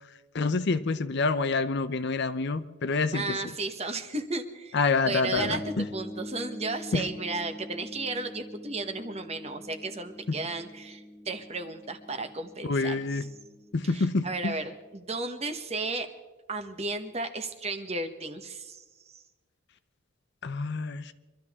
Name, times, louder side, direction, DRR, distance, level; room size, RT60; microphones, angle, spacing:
voice 1, 0.3-3.4 4.7-5.9 6.9-7.1 12.6-13.3 13.7-14.6 20.4-21.1, left 3 dB, 55° left, 0.7 m, -27 dB
voice 2, 3.1-4.8 5.0-13.3 13.8-16.1 16.5-18.8, right 3 dB, 30° right, 1.1 m, -34 dB
sound 1, 5.4-15.0, left 1 dB, 5° left, 1.8 m, -44 dB
24.5 x 13.0 x 3.6 m
head